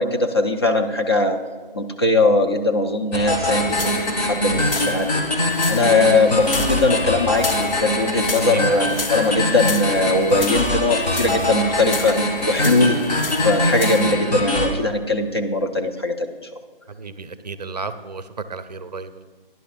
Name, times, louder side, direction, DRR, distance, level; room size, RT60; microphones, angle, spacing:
voice 1, 0.0-1.4 1.7-3.9 4.2-5.1 5.7-13.0 13.4-16.3, left 2 dB, 25° left, 3 dB, 0.5 m, -20 dB
sound 1, 3.1-14.7, left 1 dB, 45° left, 2.3 m, -23 dB
sound 2, 3.5-14.1, left 3 dB, 70° left, 1.4 m, -33 dB
voice 2, 8.3-8.8 16.9-19.3, right 4 dB, 45° right, 11 dB, 0.6 m, -33 dB
18.0 x 11.0 x 2.5 m, 1.5 s
figure-of-eight pair, 150°, 29 cm